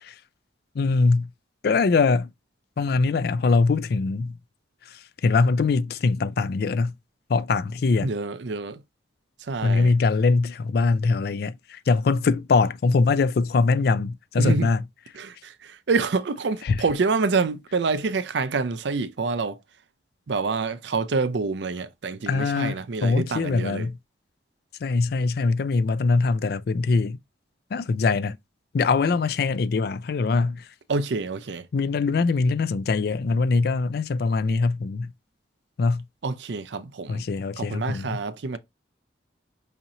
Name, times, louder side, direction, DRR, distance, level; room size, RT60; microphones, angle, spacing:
voice 1, 0.8-1.3 1.6-2.3 2.8-4.4 5.2-6.9 7.3-8.1 9.6-14.8 16.6-16.8 22.3-24.0 24.8-27.2 27.7-28.4 28.7-30.6 31.7-35.1 35.8-36.0 37.1-38.2, left 4 dB, 55° left, 0.3 m, -22 dB
voice 2, 8.0-8.8 9.5-9.9 14.4-14.7 15.2-15.5 15.9-19.6 20.3-23.9 30.9-31.7 36.2-37.2 37.6-38.6, right 4 dB, 70° right, 0.5 m, -27 dB
5.0 x 2.9 x 2.7 m
head